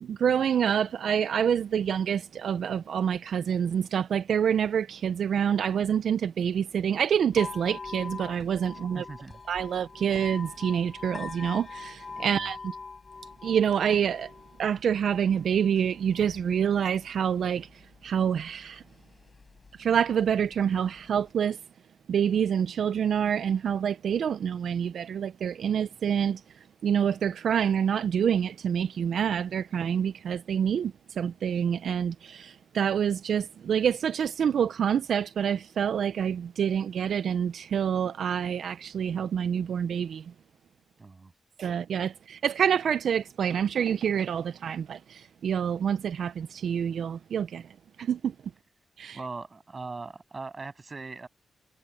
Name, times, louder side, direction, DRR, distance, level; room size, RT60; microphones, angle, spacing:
voice 1, 0.0-9.0 9.5-12.7 13.4-14.3 14.6-18.8 19.8-21.6 22.1-26.4 26.8-40.2 41.6-47.6 48.0-48.3 49.0-49.2, right 8 dB, 75° right, 0.4 m, -27 dB
sound 1, 7.3-21.3, left 4 dB, 40° left, 5.4 m, -44 dB
voice 2, 8.9-9.4 12.3-12.5 41.0-41.3 49.1-51.3, right 3 dB, 35° right, 7.3 m, -40 dB
cardioid pair, 100°, 0 cm